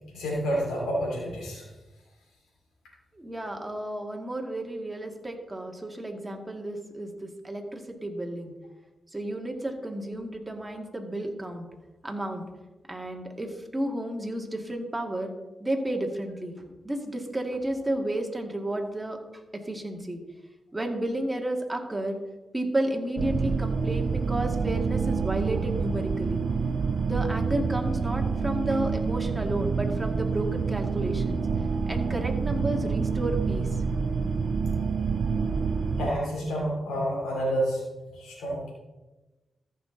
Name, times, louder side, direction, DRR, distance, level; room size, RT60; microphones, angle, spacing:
voice 1, 0.1-1.7 36.0-37.8 38.1-38.7, equal, 90° left, -5 dB, 3.2 m, -29 dB
voice 2, 3.2-8.5 9.1-11.7 12.0-12.4 12.9-15.3 15.6-16.6 16.8-19.2 19.7-20.2 20.7-22.2 22.5-26.4 27.0-31.4 31.9-33.7, right 1 dB, 20° right, 2 dB, 2.1 m, -32 dB
sound 1, 23.2-36.1, right 5 dB, 70° right, 0.5 m, -27 dB
14.0 x 6.2 x 3.9 m, 1.1 s
supercardioid pair, 45°, 0 cm